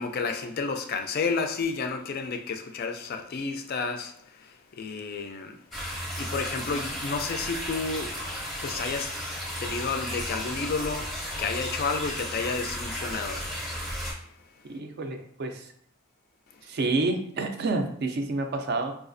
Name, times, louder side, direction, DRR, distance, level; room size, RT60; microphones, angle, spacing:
voice 1, 0.0-5.6 6.2-8.3 8.6-9.2 9.6-13.7 16.5-16.6, left 4 dB, 45° left, 0.3 m, -31 dB
sound 1, 5.7-14.1, equal, ahead, 0.6 m, -34 dB
voice 2, 14.7-15.7 16.6-18.9, right 3 dB, 45° right, 0.3 m, -29 dB
4.1 x 2.3 x 2.5 m
head